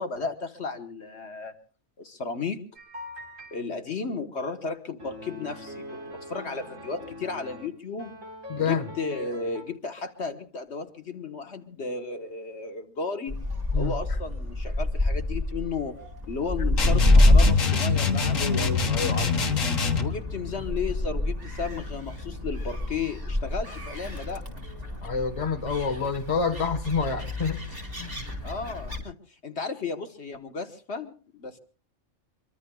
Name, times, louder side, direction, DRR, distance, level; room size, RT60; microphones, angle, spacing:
voice 1, 0.0-1.5 2.0-2.6 3.5-8.1 8.6-13.4 13.8-16.0 16.3-18.7 20.0-24.4 28.4-31.6, left 4 dB, 55° left, 1.4 m, -34 dB
sound 1, 2.8-3.6 5.0-7.7 8.0-9.6, left 1 dB, 70° right, 4.5 m, -42 dB
voice 2, 8.5-8.8 13.7-13.9 18.4-19.3 25.0-27.6 28.0-28.2, left 5 dB, 25° left, 1.3 m, -28 dB
Gull seagull, 13.3-29.0, left 1 dB, 30° right, 4.6 m, -27 dB
sound 2, 16.8-20.2, left 5 dB, 70° left, 1.8 m, -25 dB
24.5 x 24.0 x 2.3 m
omnidirectional pair, 1.4 m